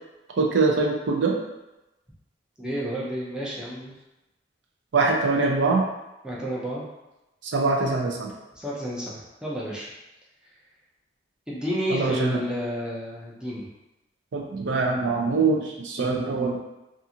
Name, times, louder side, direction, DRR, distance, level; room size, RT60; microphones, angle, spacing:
voice 1, 0.4-1.3 4.9-5.9 7.4-8.3 11.9-12.4 14.3-16.6, right 3 dB, 70° right, 0 dB, 0.4 m, -23 dB
voice 2, 2.6-3.9 6.2-6.8 8.5-9.9 11.5-13.7, equal, 5° right, -6 dB, 0.4 m, -31 dB
2.4 x 2.4 x 2.7 m, 0.98 s
head